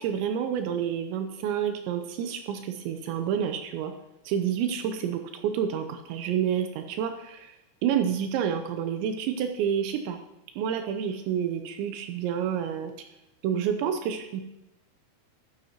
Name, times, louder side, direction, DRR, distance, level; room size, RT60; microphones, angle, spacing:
voice 1, 0.0-3.9 4.3-7.5 7.8-10.2 10.6-12.9 13.4-14.4, right 8 dB, 80° right, 7 dB, 2.7 m, -29 dB
10.5 x 10.5 x 2.9 m, 0.92 s
omnidirectional pair, 5.7 m